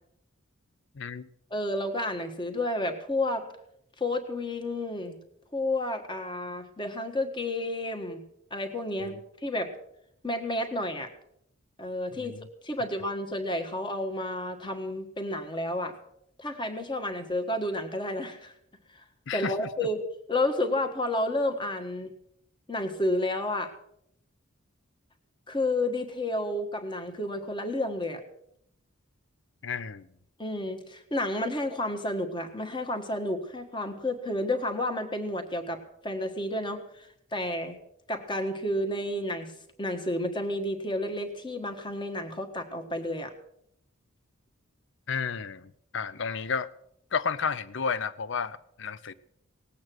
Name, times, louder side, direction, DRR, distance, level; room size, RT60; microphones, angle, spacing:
voice 1, 1.0-1.3 12.2-12.4 19.3-19.7 29.6-30.1 45.1-46.7 47.1-49.1, left 6 dB, 60° left, 0.6 m, -32 dB
voice 2, 1.5-3.4 4.0-5.1 5.5-8.2 8.5-9.7 10.2-11.1 11.8-12.3 12.6-15.9 16.4-18.5 18.9-19.0 19.3-20.0 20.3-22.1 22.7-23.7 25.5-28.2 30.4-37.8 38.1-39.5 39.8-43.3, left 1 dB, 20° left, 1.4 m, -31 dB
18.5 x 8.6 x 6.3 m
head